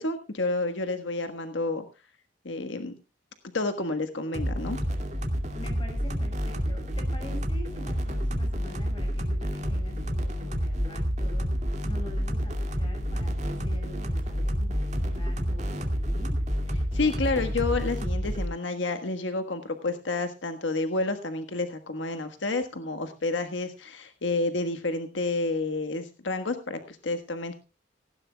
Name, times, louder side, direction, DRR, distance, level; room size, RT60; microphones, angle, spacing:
voice 1, 0.0-1.8 2.4-2.9 3.5-4.8 16.9-27.5, left 2 dB, 85° left, 8 dB, 1.4 m, -30 dB
sound 1, 4.3-18.5, equal, 40° right, 2.3 m, -29 dB
voice 2, 5.5-16.4, equal, 25° left, 4 dB, 5.4 m, -45 dB
17.5 x 16.5 x 2.3 m, 0.29 s
head